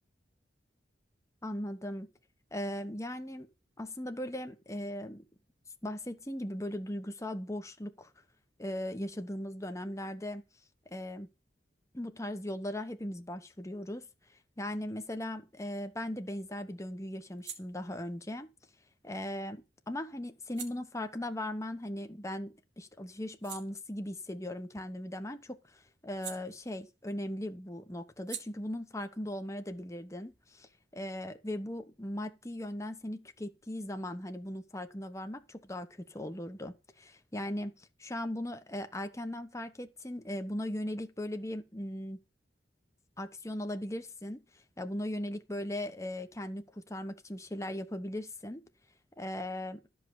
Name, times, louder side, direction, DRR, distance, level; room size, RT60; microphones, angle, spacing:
voice 1, 1.4-2.1 2.5-3.5 3.8-5.2 5.8-8.1 8.6-10.4 10.9-11.3 11.9-14.1 14.6-18.5 19.0-42.2 43.2-44.4 44.8-48.6 49.2-49.8, left 1 dB, 15° left, 1.1 m, -38 dB
sound 1, 17.2-22.5 22.9-27.2 27.4-30.8, right 8 dB, 75° right, 2.7 m, -52 dB
12.5 x 5.5 x 7.9 m
head